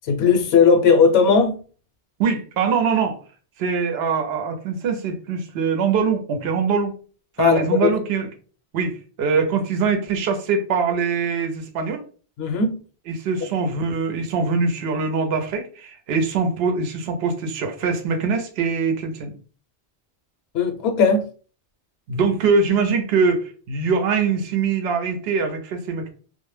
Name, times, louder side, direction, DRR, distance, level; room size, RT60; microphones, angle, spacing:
voice 1, 0.1-1.6 7.4-7.9 12.4-12.8 20.5-21.3, left 5 dB, 75° left, 0.8 m, -17 dB
voice 2, 2.2-3.2 3.6-6.9 7.4-8.3 8.7-12.0 13.1-19.4 22.1-26.1, right 5 dB, 70° right, 0.8 m, -23 dB
2.1 x 2.1 x 3.1 m
omnidirectional pair, 1.1 m